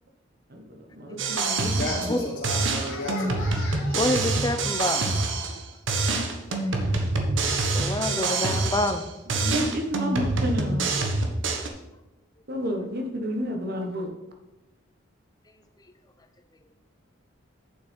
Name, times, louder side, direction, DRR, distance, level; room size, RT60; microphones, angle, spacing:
voice 1, 0.5-2.6 8.1-8.6 9.3-10.9 12.5-14.1, equal, 50° right, 3 dB, 1.3 m, -31 dB
sound 1, 1.2-2.2 2.4-5.6 5.9-9.0 9.3-11.7, right 3 dB, 70° right, 1.2 m, -26 dB
voice 2, 1.8-4.0, left 1 dB, 45° left, -4 dB, 1.4 m, -33 dB
voice 3, 3.9-5.1 6.6-6.7 7.7-9.0, left 1 dB, 20° left, 8 dB, 0.6 m, -27 dB
8.8 x 7.3 x 4.5 m, 0.99 s
head